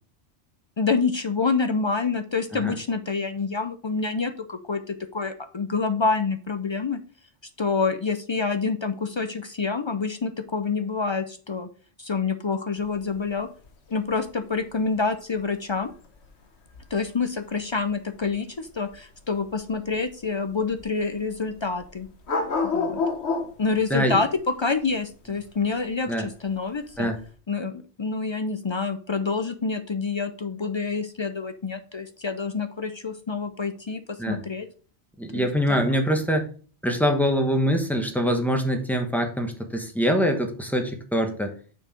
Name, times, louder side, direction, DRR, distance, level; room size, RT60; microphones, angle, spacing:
voice 1, 0.8-7.0 7.6-11.7 12.0-13.5 13.9-15.9 16.9-22.1 22.6-23.0 23.6-27.1 27.5-27.7 28.0-34.7 35.3-35.9, left 4 dB, 50° left, 9 dB, 0.3 m, -27 dB
sound 1, 12.8-27.3, left 4 dB, 70° left, 1.4 m, -32 dB
voice 2, 23.9-24.2 26.1-26.3 27.0-27.2 34.2-34.4 35.2-36.5 36.8-41.5, equal, ahead, 4 dB, 1.0 m, -24 dB
6.2 x 4.7 x 4.9 m, 0.41 s
omnidirectional pair, 1.2 m